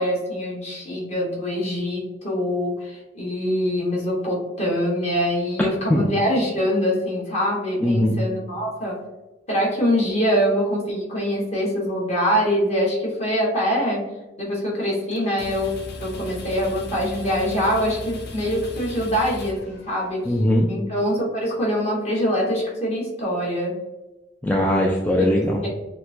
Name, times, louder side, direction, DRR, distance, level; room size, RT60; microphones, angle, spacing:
voice 1, 0.0-9.0 9.5-14.0 14.4-20.2 20.7-23.7 25.2-25.3 25.6-25.7, equal, 35° left, -4 dB, 1.5 m, -24 dB
voice 2, 7.8-8.2 20.3-20.7 24.4-25.6, left 1 dB, 10° left, -2 dB, 0.3 m, -20 dB
sound 1, 15.1-20.3, left 1 dB, 60° left, 0.6 m, -37 dB
6.2 x 2.2 x 2.7 m, 1.1 s
head